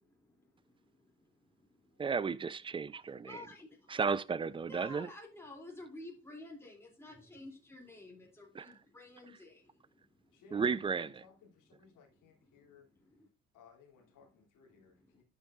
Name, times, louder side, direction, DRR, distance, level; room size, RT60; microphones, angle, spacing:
voice 1, 0.0-2.0 3.2-4.0 4.7-10.4 11.9-13.3 14.2-14.4 14.7-15.2, left 2 dB, 5° left, 2.6 m, -53 dB
voice 2, 2.0-3.4 3.9-5.1 8.5-8.7 10.5-11.2, right 5 dB, 15° right, 0.3 m, -34 dB
voice 3, 10.3-12.9 13.5-15.2, left 5 dB, 60° left, 2.9 m, -61 dB
12.0 x 5.3 x 2.4 m
hypercardioid pair, 60°, 36 cm